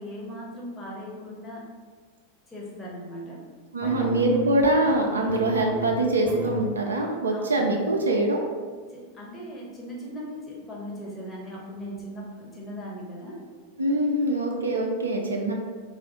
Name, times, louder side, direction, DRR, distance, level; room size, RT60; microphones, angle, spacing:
voice 1, 0.0-1.7 2.5-3.5 3.8-4.1 7.3-7.7 8.9-13.5, equal, 15° left, -4 dB, 1.0 m, -39 dB
voice 2, 3.7-8.4 13.8-15.5, right 1 dB, 75° right, 1 dB, 0.4 m, -24 dB
sound 1, 3.8-6.6 7.1-7.4 7.7-7.9, right 1 dB, ahead, 0.9 m, -34 dB
3.2 x 2.5 x 3.6 m, 1.5 s
figure-of-eight pair, 90°, 0 cm